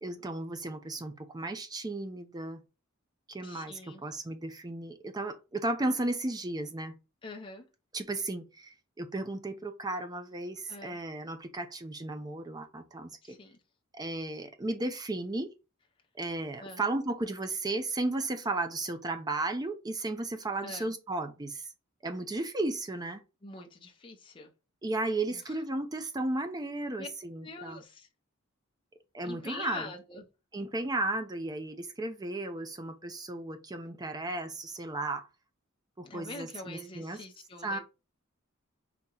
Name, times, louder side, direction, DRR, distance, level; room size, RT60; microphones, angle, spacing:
voice 1, 0.0-2.6 3.3-6.9 7.9-13.4 13.9-15.5 16.2-21.7 22.0-23.2 24.8-27.8 29.1-29.8 30.5-35.3 36.0-37.2 37.6-37.8, right 2 dB, 20° right, 0.5 m, -34 dB
voice 2, 3.4-4.0 7.2-7.7 10.7-11.0 13.2-13.6 16.6-16.8 20.6-20.9 23.4-24.5 25.3-25.6 27.0-27.1 27.4-28.1 29.2-30.2 36.0-37.8, left 3 dB, 25° left, 0.7 m, -44 dB
4.2 x 2.9 x 3.7 m
head